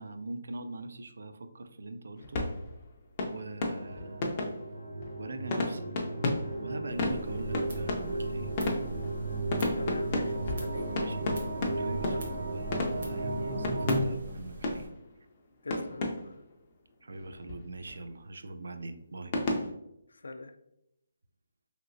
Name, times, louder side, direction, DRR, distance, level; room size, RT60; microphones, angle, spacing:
voice 1, 0.0-2.4 3.3-4.3 5.2-5.8 6.5-8.5 10.9-11.3 11.8-14.9 17.0-19.3, right 2 dB, 65° right, 8 dB, 0.3 m, -42 dB
sound 1, 2.2-15.4 15.7-16.6 17.1-18.1 19.3-19.7, left 2 dB, 20° left, 0.3 m, -34 dB
sound 2, 3.7-14.0, right 2 dB, 85° right, 0.8 m, -35 dB
sound 3, 6.9-14.9, right 3 dB, 50° right, 0.8 m, -44 dB
voice 2, 9.8-10.9 12.1-12.4 15.6-16.3 20.2-20.5, left 3 dB, 90° left, 8 dB, 0.4 m, -43 dB
3.1 x 2.9 x 2.5 m, 0.81 s
hypercardioid pair, 175°, 0 cm